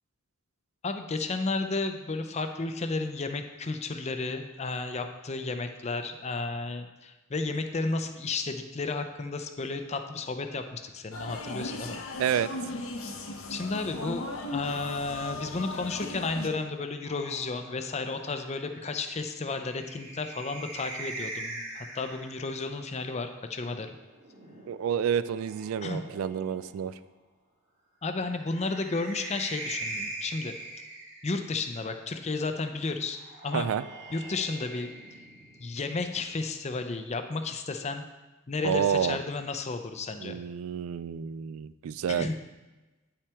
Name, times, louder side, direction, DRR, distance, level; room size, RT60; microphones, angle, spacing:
voice 1, 0.8-12.0 13.5-24.0 25.8-26.0 28.0-30.6 31.2-33.7 34.1-34.9 35.6-38.0 38.5-40.4 42.1-42.3, left 3 dB, 30° left, 7 dB, 0.5 m, -33 dB
sound 1, 11.1-16.5, left 2 dB, 75° left, 0.9 m, -37 dB
voice 2, 12.2-12.5 24.7-26.9 33.5-33.8 38.6-39.2 40.2-42.3, right 8 dB, 75° right, 15 dB, 0.3 m, -29 dB
sound 2, 17.0-22.6 23.9-26.9 28.3-31.8 33.0-35.9, right 2 dB, 60° right, 1.6 m, -42 dB
9.5 x 5.8 x 3.5 m, 1.1 s
head